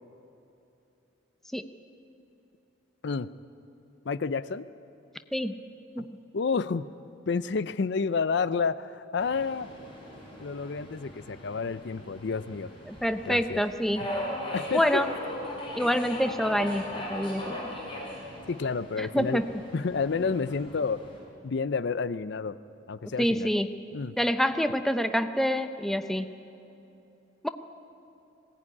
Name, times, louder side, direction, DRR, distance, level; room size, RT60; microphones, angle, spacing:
voice 1, 4.0-4.7 6.0-6.1 6.3-6.9 7.3-9.7 10.4-12.7 13.3-13.6 14.5-15.0 18.5-19.4 19.7-21.0 21.4-22.6 22.9-23.5 23.9-24.1, left 5 dB, 60° left, 15 dB, 0.5 m, -30 dB
Subway metro underground, 9.2-21.2, left 1 dB, 25° left, 5.9 m, -39 dB
voice 2, 12.9-14.0 14.7-15.1 15.8-17.8 19.0-19.4 23.0-23.7 24.2-26.3 27.4-27.5, equal, ahead, 8 dB, 0.7 m, -27 dB
20.5 x 17.5 x 9.8 m, 2.9 s
head